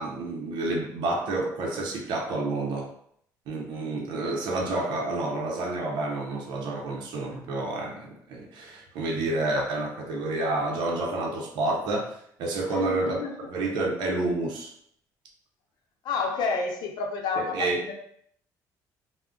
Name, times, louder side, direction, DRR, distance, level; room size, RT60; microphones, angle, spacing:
voice 1, 0.0-2.9 3.5-13.2 13.5-14.7 17.4-17.8, right 2 dB, 80° right, -1 dB, 0.6 m, -29 dB
voice 2, 12.7-13.4 16.0-17.9, left 4 dB, 70° left, 2 dB, 0.6 m, -30 dB
2.3 x 2.0 x 3.6 m, 0.66 s
cardioid pair, 115°, 8 cm